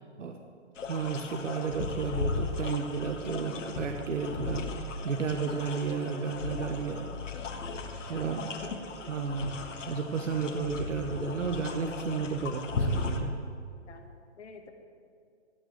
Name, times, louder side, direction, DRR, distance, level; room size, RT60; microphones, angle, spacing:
sound 1, 0.8-13.2, left 3 dB, 85° left, 1.5 m, -36 dB
voice 1, 0.9-4.7 5.0-7.1 8.1-8.5 9.0-9.6 9.9-13.3, right 5 dB, 85° right, 4 dB, 1.3 m, -32 dB
voice 2, 13.9-14.7, left 5 dB, 65° left, 5 dB, 1.8 m, -49 dB
16.5 x 6.6 x 7.7 m, 2.2 s
hypercardioid pair, 155°, 36 cm